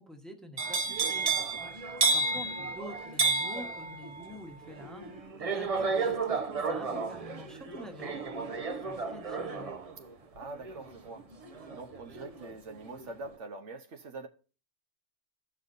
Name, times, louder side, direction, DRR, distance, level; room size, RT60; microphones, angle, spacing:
voice 1, 0.0-1.3 2.1-9.7, equal, ahead, 1.2 m, -47 dB
sound 1, 0.6-12.5 12.9-13.3, right 4 dB, 35° right, 0.7 m, -32 dB
voice 2, 10.1-14.3, right 3 dB, 75° right, 1.3 m, -45 dB
16.5 x 5.8 x 2.6 m
omnidirectional pair, 1.3 m